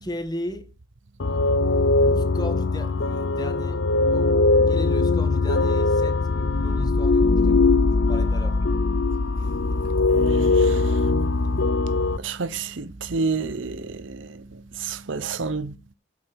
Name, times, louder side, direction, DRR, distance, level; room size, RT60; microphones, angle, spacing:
voice 1, 0.0-0.7 2.0-4.4 4.7-8.7, left 1 dB, 20° left, 1.5 m, -36 dB
sound 1, 1.2-12.2, left 3 dB, 70° left, 0.7 m, -21 dB
voice 2, 10.2-11.3 12.1-15.8, right 4 dB, 75° right, 0.8 m, -31 dB
8.9 x 7.6 x 5.9 m
head